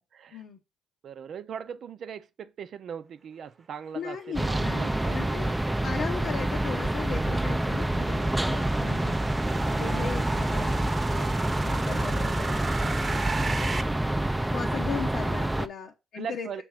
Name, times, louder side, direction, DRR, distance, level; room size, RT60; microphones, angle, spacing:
voice 1, 0.1-0.4 1.0-5.7 6.7-6.8 9.5-9.6 16.1-16.6, right 7 dB, 60° right, 0.6 m, -40 dB
voice 2, 3.9-5.5 5.8-9.1 9.7-13.7 14.5-16.6, left 6 dB, 70° left, 0.8 m, -38 dB
sound 1, 4.2-13.8, right 3 dB, 35° right, 0.9 m, -37 dB
sound 2, 4.3-15.7, right 1 dB, 10° right, 0.5 m, -27 dB
6.1 x 3.4 x 4.8 m
supercardioid pair, 60°, 0 cm